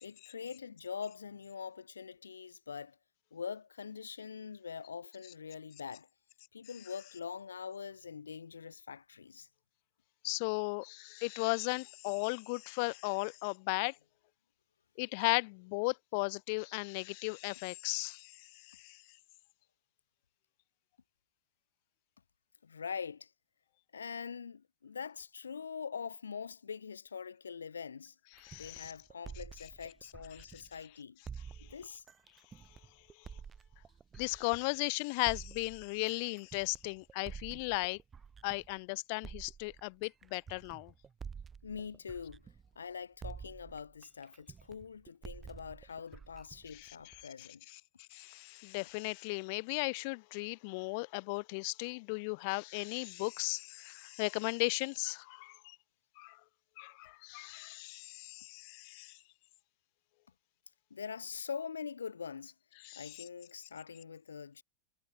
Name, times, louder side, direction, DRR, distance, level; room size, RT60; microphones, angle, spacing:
voice 1, 0.0-3.0 3.3-6.1 6.5-9.5 22.6-23.3 23.9-28.1 28.6-31.2 31.6-32.0 41.6-42.4 42.8-47.6 60.9-62.5 63.0-64.6, left 6 dB, 70° left, 4.4 m, -43 dB
voice 2, 10.2-14.0 15.0-19.0 28.4-28.9 30.4-30.5 34.2-38.0 38.4-40.9 46.7-47.8 48.1-55.8 56.2-56.4 56.8-59.2 62.8-63.2, left 32 dB, 45° left, 0.7 m, -36 dB
sound 1, 28.4-30.8 31.2-34.8 35.2-38.8 39.2-42.9 43.2-47.3, right 6 dB, 20° right, 6.3 m, -50 dB
figure-of-eight pair, 90°, 0 cm